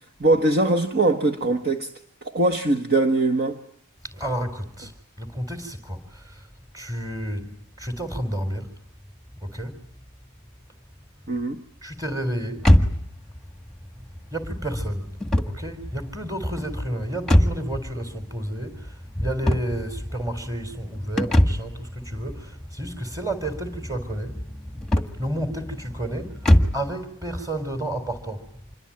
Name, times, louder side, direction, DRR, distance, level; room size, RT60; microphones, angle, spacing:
voice 1, 0.2-1.9 2.2-3.6 11.3-11.6, right 2 dB, 45° right, 1.4 m, -21 dB
voice 2, 4.0-4.9 5.2-6.5 6.7-7.5 7.8-8.7 9.4-9.8 11.8-12.7 14.0-24.5 24.9-28.5, right 1 dB, 15° right, 4.1 m, -31 dB
sound 1, 12.6-26.9, left 1 dB, ahead, 1.6 m, -25 dB
27.0 x 23.0 x 8.9 m
head